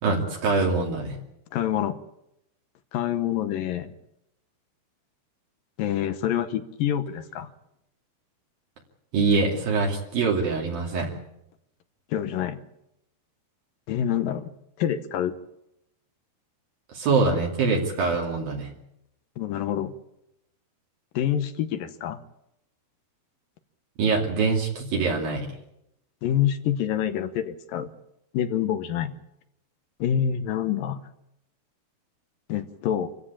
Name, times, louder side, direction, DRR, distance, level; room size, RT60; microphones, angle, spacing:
voice 1, 0.0-1.2 9.1-11.1 16.9-18.7 24.0-25.5, right 4 dB, 65° right, -1 dB, 4.4 m, -24 dB
voice 2, 1.5-2.0 2.9-4.0 5.8-7.5 12.1-12.6 13.9-14.5 14.8-15.4 19.4-19.9 21.1-22.2 26.2-27.9 28.3-29.1 30.0-31.0 32.5-33.1, left 10 dB, 70° left, 10 dB, 2.3 m, -26 dB
26.5 x 15.5 x 8.6 m, 0.82 s
omnidirectional pair, 4.7 m